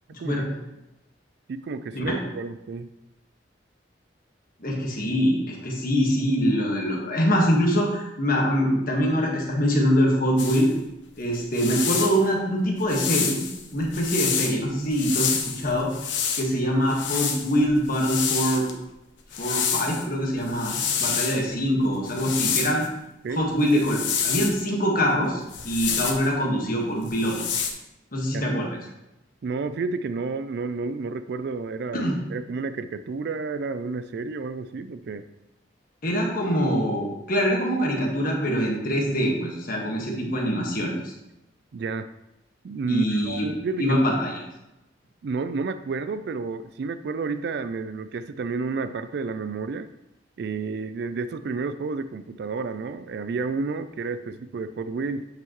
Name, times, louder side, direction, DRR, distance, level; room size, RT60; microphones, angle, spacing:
voice 1, 0.1-0.4 1.9-2.2 4.6-10.7 11.2-13.4 13.7-15.9 16.4-18.7 19.4-22.8 23.3-27.7 28.1-28.8 31.9-32.2 36.0-41.1 42.9-43.5 43.8-44.4, equal, 50° left, 0 dB, 1.5 m, -24 dB
voice 2, 1.5-2.9 23.2-23.5 28.3-28.5 29.4-35.3 41.7-42.1 42.6-44.0 45.2-49.9 50.4-55.3, right 4 dB, 60° right, 11 dB, 0.3 m, -31 dB
sound 1, 10.4-10.7 11.4-12.2 12.9-14.5 14.9-16.5 16.9-18.7 19.3-20.1 20.4-21.4 22.1-22.9 23.7-24.6 25.5-26.3 27.1-27.7, left 7 dB, 75° left, 1.0 m, -28 dB
8.7 x 5.6 x 3.0 m, 0.93 s
head